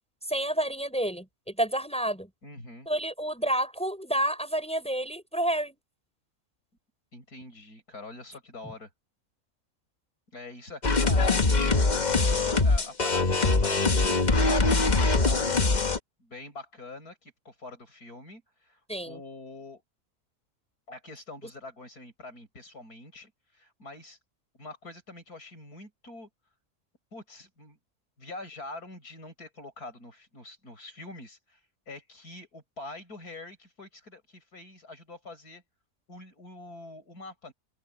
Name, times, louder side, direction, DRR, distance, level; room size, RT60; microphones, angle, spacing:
voice 1, 0.3-2.3 2.9-5.8 18.9-19.2, right 1 dB, 5° left, 5.7 m, -29 dB
voice 2, 2.4-2.9 7.1-8.9 10.3-11.7 12.1-15.6 16.2-19.8 20.9-24.2 24.6-26.3 27.1-27.8 28.2-31.6 31.9-35.6 36.1-37.5, left 2 dB, 80° left, 8.0 m, -45 dB
sound 1, 10.8-16.0, left 3 dB, 30° left, 1.3 m, -23 dB
omnidirectional pair, 1.6 m